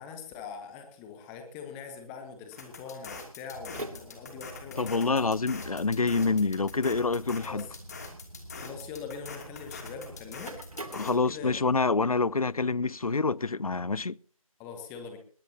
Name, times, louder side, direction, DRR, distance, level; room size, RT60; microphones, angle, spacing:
voice 1, 0.0-5.3 7.4-7.7 8.5-10.6 11.0-11.6 14.6-15.2, left 5 dB, 5° left, 1.0 m, -42 dB
sound 1, 2.5-11.1, left 4 dB, 25° left, 2.8 m, -44 dB
sound 2, 3.5-11.8, right 1 dB, 75° right, 2.6 m, -46 dB
voice 2, 4.8-7.7 10.9-14.2, left 4 dB, 75° left, 0.6 m, -27 dB
20.5 x 17.5 x 2.9 m
figure-of-eight pair, 160°, 18 cm